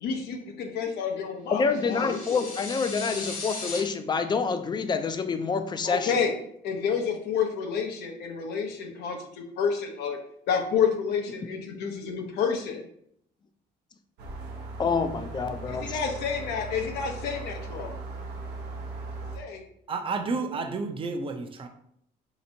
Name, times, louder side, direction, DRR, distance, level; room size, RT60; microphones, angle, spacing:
voice 1, 0.0-2.5 5.8-6.3 6.6-10.2 10.5-12.8 15.7-17.9 19.3-19.6, left 6 dB, 80° left, 3 dB, 0.6 m, -29 dB
voice 2, 1.5-6.1 14.8-16.0, left 5 dB, 25° left, 9 dB, 0.4 m, -27 dB
sound 1, 1.7-3.8, left 3 dB, 50° left, 1.1 m, -37 dB
sound 2, 14.2-19.4, right 2 dB, 80° right, 0.7 m, -38 dB
voice 3, 19.9-21.7, right 4 dB, 30° right, 6 dB, 0.5 m, -31 dB
4.1 x 2.9 x 2.7 m, 0.69 s
cardioid pair, 110°, 17 cm